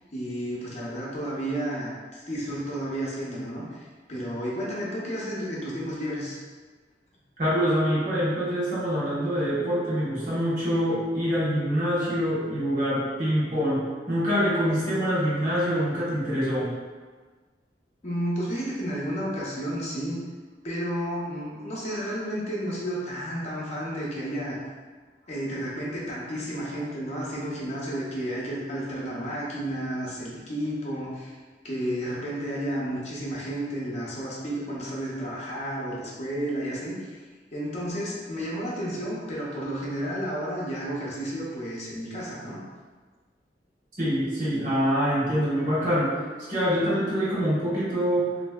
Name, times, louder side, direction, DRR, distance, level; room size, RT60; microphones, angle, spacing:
voice 1, 0.1-6.4 18.0-20.2 20.6-24.6 25.2-31.3 31.6-37.2 37.5-42.6, equal, 40° left, -5 dB, 0.6 m, -32 dB
voice 2, 7.4-13.8 14.1-16.7 44.0-46.2 46.5-48.3, equal, 45° right, -9 dB, 1.1 m, -25 dB
3.1 x 2.6 x 2.2 m, 1.4 s
head